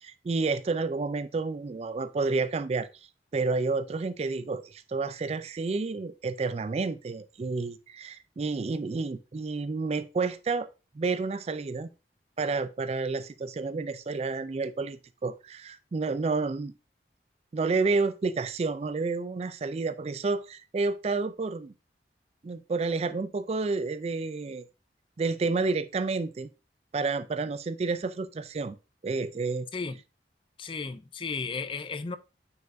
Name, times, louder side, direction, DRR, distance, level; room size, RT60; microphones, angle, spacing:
voice 1, 0.0-2.9 3.3-10.7 11.0-11.9 12.4-16.7 17.5-21.7 22.4-24.6 25.2-26.5 26.9-28.8 29.0-29.7, right 3 dB, 35° right, 0.3 m, -30 dB
voice 2, 30.6-32.2, left 4 dB, 30° left, 0.4 m, -34 dB
9.2 x 4.7 x 2.6 m
head